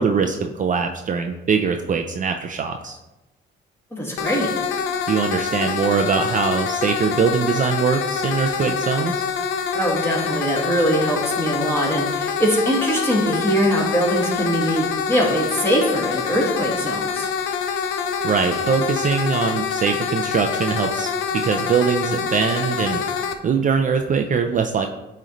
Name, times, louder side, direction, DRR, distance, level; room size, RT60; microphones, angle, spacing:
voice 1, 0.0-3.0 5.1-9.3 18.2-23.0 23.4-24.9, right 6 dB, 40° right, 5 dB, 0.5 m, -22 dB
voice 2, 3.9-4.6 9.7-17.3, equal, 10° left, -3 dB, 2.1 m, -22 dB
sound 1, 4.2-23.3, left 6 dB, 85° left, 0.6 m, -25 dB
8.8 x 3.2 x 3.9 m, 1.0 s
cardioid pair, 90°, 20 cm